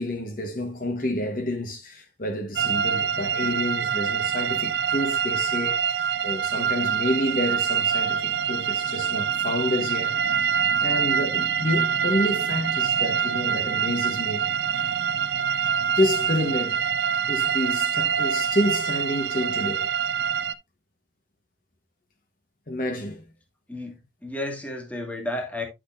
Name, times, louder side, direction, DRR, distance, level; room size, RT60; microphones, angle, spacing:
voice 1, 0.0-10.5 10.8-14.5 16.0-16.8 17.3-19.9 22.7-23.3, left 1 dB, 45° left, 1.2 m, -29 dB
sound 1, 2.6-20.5, right 8 dB, 60° right, 0.5 m, -25 dB
voice 2, 23.7-25.6, left 1 dB, 10° left, 1.7 m, -32 dB
10.0 x 6.3 x 2.5 m
head